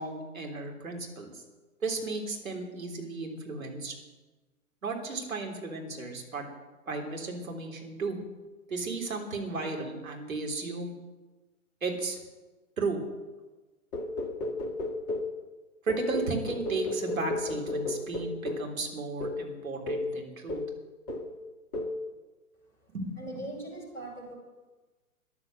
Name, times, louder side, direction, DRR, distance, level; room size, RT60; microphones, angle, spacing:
voice 1, 0.0-1.4 1.8-3.9 4.8-6.5 6.9-8.2 8.7-11.0 11.8-12.2 12.8-13.0 15.8-20.6 22.9-23.1, right 3 dB, 70° right, 1 dB, 3.6 m, -34 dB
sound 1, 13.9-15.4 15.9-18.7 19.2-19.4 19.9-20.1 20.5-20.8 21.1-21.4 21.7-22.0, left 2 dB, 30° left, 1.7 m, -33 dB
voice 2, 23.2-24.3, right 1 dB, 5° left, -4 dB, 5.5 m, -40 dB
13.5 x 10.5 x 7.8 m, 1.2 s
figure-of-eight pair, 120°, 43 cm